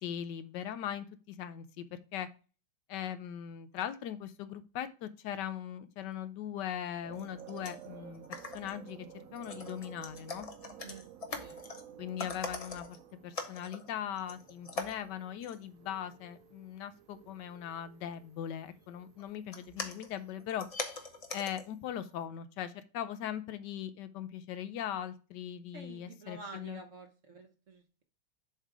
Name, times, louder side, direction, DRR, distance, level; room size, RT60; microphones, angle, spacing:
voice 1, 0.0-2.3 2.9-9.1 9.3-10.5 12.0-20.7 21.3-26.8, left 10 dB, 80° left, 12 dB, 1.2 m, -40 dB
sound 1, 7.0-21.7, right 9 dB, 75° right, 0.8 m, -54 dB
sound 2, 7.2-7.9 8.1-8.9 9.3-11.9 12.2-13.0 13.3-13.9 14.2-15.1 15.4-15.6 18.5-18.7 19.2-21.7 22.1-22.2, left 3 dB, 50° left, 0.4 m, -42 dB
voice 2, 25.7-28.0, right 3 dB, 50° right, 5 dB, 1.1 m, -49 dB
7.3 x 3.4 x 4.9 m, 0.34 s
omnidirectional pair, 1.9 m